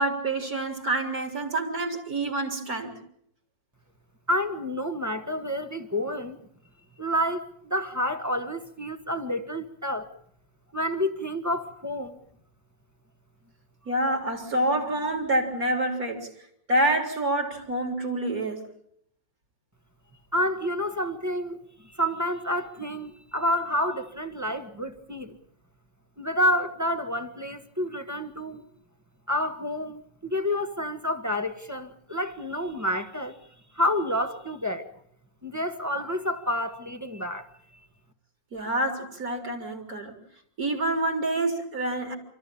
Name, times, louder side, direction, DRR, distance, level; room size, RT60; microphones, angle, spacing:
voice 1, 0.0-3.0 13.9-16.3 16.7-18.6 38.5-40.2 40.6-42.2, right 1 dB, 50° right, 4.3 m, -27 dB
voice 2, 4.3-6.4 7.0-10.1 10.7-12.2 20.3-21.6 21.8-25.4 26.2-28.6 29.3-33.4 33.7-34.9 35.4-37.5, left 1 dB, 10° right, 1.4 m, -29 dB
29.5 x 14.0 x 8.6 m
omnidirectional pair, 2.0 m